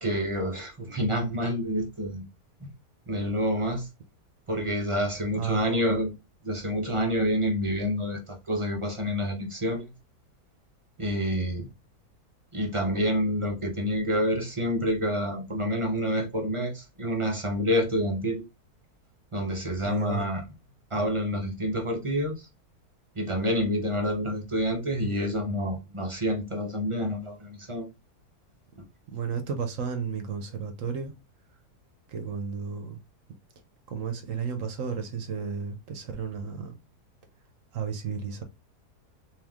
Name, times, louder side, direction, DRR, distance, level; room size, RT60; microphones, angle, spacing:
voice 1, 0.0-2.2 2.6-2.7 3.1-3.9 4.5-6.2 6.4-9.9 11.0-11.7 12.5-18.4 19.3-20.4 20.9-22.5 23.1-27.9, equal, 30° right, 0.6 m, -28 dB
voice 2, 5.4-5.9 19.8-20.3 29.1-31.1 32.1-33.0 33.9-36.7 37.7-38.4, right 6 dB, 60° right, 1.1 m, -33 dB
3.7 x 2.8 x 3.5 m
omnidirectional pair, 1.7 m